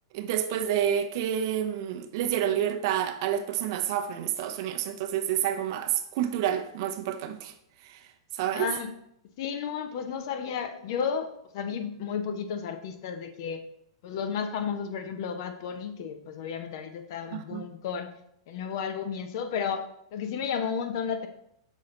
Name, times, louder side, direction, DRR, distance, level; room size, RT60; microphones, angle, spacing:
voice 1, 0.1-7.5 7.8-8.1 8.3-8.7 17.3-17.6, right 10 dB, 55° right, 0.7 m, -29 dB
voice 2, 8.5-8.9 9.4-13.6 14.0-18.1 18.5-19.8 20.1-21.3, left 7 dB, 60° left, 0.8 m, -33 dB
6.3 x 4.2 x 3.8 m
hypercardioid pair, 115°, 2 cm